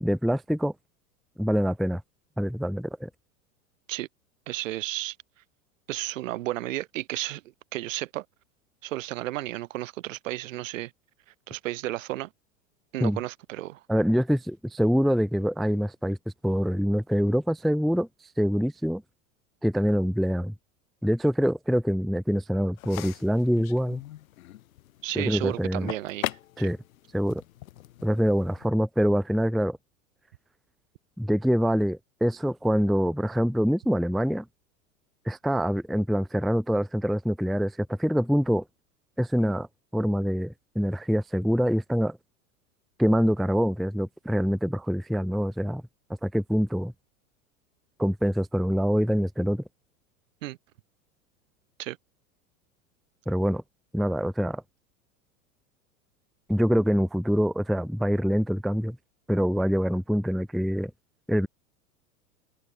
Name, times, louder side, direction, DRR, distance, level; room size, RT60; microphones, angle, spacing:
voice 1, 0.0-0.7 1.4-2.0 2.4-3.1 13.0-13.2 13.9-16.2 16.4-18.1 18.4-19.0 19.6-20.5 21.0-24.0 25.2-25.9 26.6-26.8 27.1-27.4 28.0-29.8 31.2-34.4 35.3-38.6 39.2-39.7 39.9-42.2 43.0-45.8 46.2-46.9 48.0-49.6 53.3-53.6 53.9-54.6 56.5-59.0 59.3-60.9 61.3-61.5, equal, ahead, 0.5 m, -25 dB
voice 2, 4.5-5.2 5.9-7.4 7.7-8.3 8.8-10.9 11.5-12.3 12.9-13.8 25.0-26.7 50.4-50.6 51.8-52.0, right 16 dB, 65° right, 2.0 m, -33 dB
sound 1, 22.8-28.7, left 14 dB, 70° left, 0.7 m, -40 dB
figure-of-eight pair, 90°, 42 cm